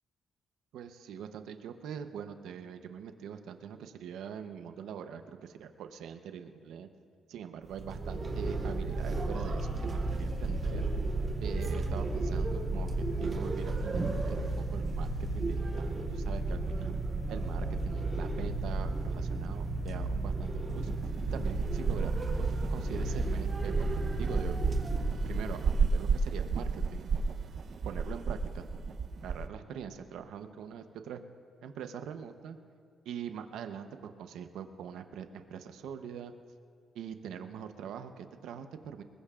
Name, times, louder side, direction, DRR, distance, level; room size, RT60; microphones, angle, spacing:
voice 1, 0.7-6.9 7.3-10.9 11.4-15.1 15.3-16.9 17.3-20.9 21.3-23.9 24.2-24.6 25.2-27.1 27.8-28.6 29.2-31.2 31.6-32.6 33.0-36.3 36.9-39.0, right 8 dB, 80° right, 8 dB, 0.8 m, -43 dB
sound 1, 7.7-25.9, right 2 dB, 35° right, 2.6 m, -33 dB
sound 2, 20.8-29.5, right 5 dB, 55° right, 0.8 m, -32 dB
21.0 x 20.5 x 2.5 m, 2.1 s
cardioid pair, 90°, 0 cm